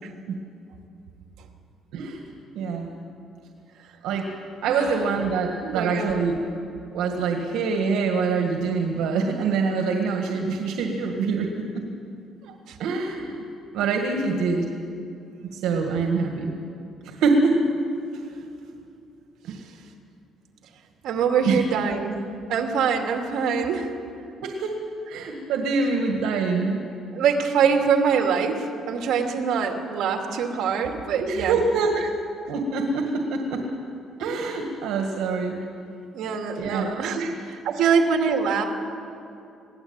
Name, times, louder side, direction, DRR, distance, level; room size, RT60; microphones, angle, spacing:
voice 1, 1.9-2.2 2.5-2.9 4.0-4.3 4.6-6.4 6.9-11.8 12.4-12.5 12.8-13.4 13.7-14.7 15.5-16.5 17.0-17.6 19.4-19.6 21.4-21.6 24.4-24.8 25.1-26.8 31.2-31.9 32.5-33.6 34.2-35.6 36.5-37.4 37.8-37.9, right 4 dB, 80° right, 3 dB, 1.9 m, -25 dB
voice 2, 5.6-6.2 21.0-22.2 22.5-23.9 27.1-31.5 36.1-37.2 37.7-38.6, right 6 dB, 65° right, 3 dB, 2.6 m, -24 dB
21.5 x 17.0 x 8.9 m, 2.7 s
cardioid pair, 170°, 0 cm